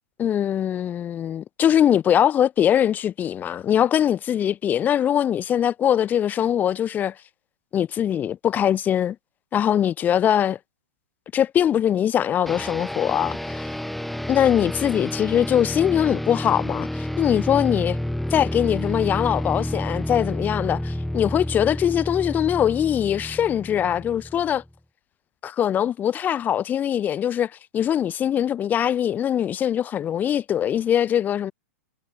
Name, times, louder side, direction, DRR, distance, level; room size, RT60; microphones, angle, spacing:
voice 1, 0.2-7.1 7.7-9.2 9.5-10.6 11.3-13.7 14.3-18.0 18.3-24.6 25.4-31.5, left 10 dB, 20° left, 0.8 m, -22 dB
sound 1, 12.5-24.7, left 1 dB, ahead, 1.2 m, -30 dB
hypercardioid pair, 130°, 8 cm